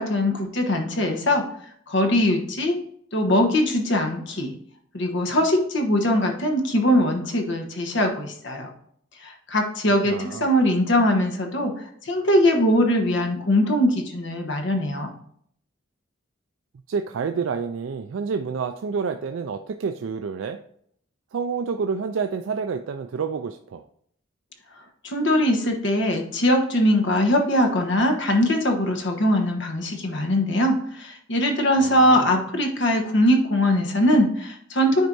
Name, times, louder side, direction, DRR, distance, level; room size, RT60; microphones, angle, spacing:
voice 1, 0.0-1.4 1.9-2.8 3.1-4.5 4.9-8.7 9.2-15.2 25.0-35.1, left 1 dB, 65° left, 4 dB, 1.2 m, -21 dB
voice 2, 10.0-10.5 16.9-20.6 21.3-23.8 31.8-32.4, right 5 dB, 80° right, 7 dB, 0.4 m, -29 dB
9.3 x 4.5 x 2.7 m, 0.65 s
head